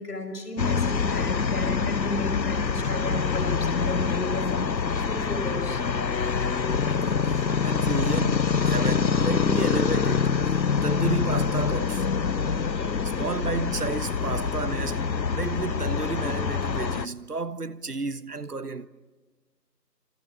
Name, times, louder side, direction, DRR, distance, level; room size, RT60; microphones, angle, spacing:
voice 1, 0.0-5.8 12.8-12.9, left 1 dB, 65° left, 6.2 m, -34 dB
sound 1, 0.6-17.1, left 5 dB, 90° left, 1.0 m, -25 dB
sound 2, 0.9-14.9, equal, 45° right, 6.2 m, -48 dB
voice 2, 7.0-12.1 13.0-18.9, right 3 dB, 65° right, 1.4 m, -32 dB
29.5 x 27.5 x 7.4 m
figure-of-eight pair, 170°, 50 cm